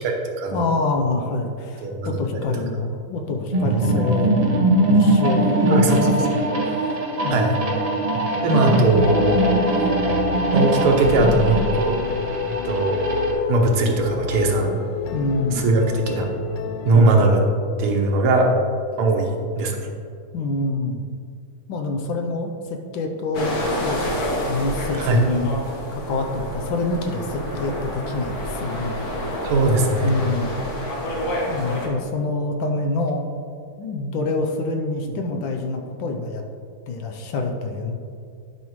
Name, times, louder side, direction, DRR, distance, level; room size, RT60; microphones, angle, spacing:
voice 1, 0.0-0.7 1.8-2.4 5.7-6.1 7.3-7.5 8.4-9.1 10.5-12.0 12.6-13.0 13.5-14.8 15.5-16.3 16.9-17.4 17.8-18.5 19.0-19.9 25.0-25.2 29.4-30.1, right 3 dB, 85° right, 2 dB, 1.9 m, -20 dB
voice 2, 0.5-6.9 7.2-7.5 15.1-15.6 16.9-17.1 20.3-21.0 21.7-25.5 25.9-29.4 30.0-30.5 31.5-33.3 33.8-36.4 36.9-38.0, left 3 dB, 70° left, 3 dB, 1.4 m, -26 dB
sound 1, 3.5-13.3, right 2 dB, 55° right, 0.4 m, -21 dB
sound 2, 8.8-17.1, left 6 dB, 85° left, 1.5 m, -28 dB
sound 3, 23.3-31.9, left 1 dB, 50° left, 1.6 m, -28 dB
11.0 x 5.6 x 3.1 m, 2.4 s
omnidirectional pair, 2.3 m